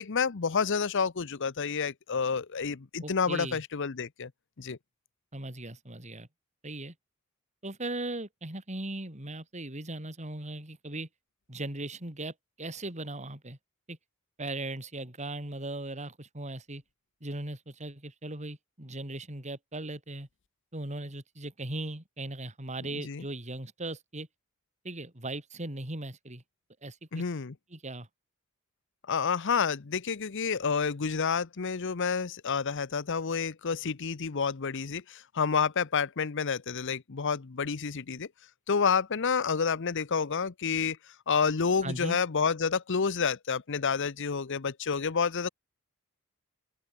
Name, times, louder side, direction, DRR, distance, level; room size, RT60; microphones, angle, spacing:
voice 1, 0.0-4.3 4.6-4.8 23.0-23.2 27.1-27.5 29.1-38.3 38.7-41.0 41.3-45.5, left 5 dB, 55° left, 0.8 m, -29 dB
voice 2, 3.0-3.6 5.3-6.3 6.6-6.9 7.6-11.1 11.5-13.6 13.9-14.0 14.4-16.8 17.2-20.3 20.7-24.3 24.8-26.4 26.8-27.2 27.7-28.1 41.8-42.2, right 2 dB, 30° right, 4.5 m, -38 dB
open air
head